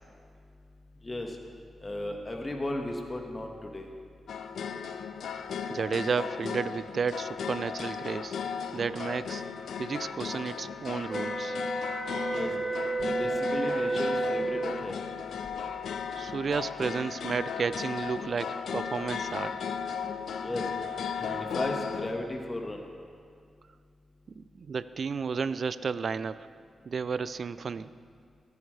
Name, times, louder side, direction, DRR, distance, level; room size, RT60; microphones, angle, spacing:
voice 1, 1.0-1.4 1.8-3.9 12.3-12.5 13.0-15.0 20.4-20.7 21.2-22.9, left 1 dB, 30° left, 2 dB, 1.5 m, -35 dB
sound 1, 4.3-22.1, left 7 dB, 75° left, 0.5 m, -36 dB
voice 2, 5.7-8.4 8.7-9.4 9.8-11.6 16.2-19.6 24.4-26.5 26.9-27.9, right 5 dB, 60° right, 16 dB, 0.4 m, -32 dB
sound 2, 11.1-15.0, right 3 dB, 15° right, 1.4 m, -31 dB
17.5 x 7.9 x 3.3 m, 2.3 s
supercardioid pair, 45°, 0 cm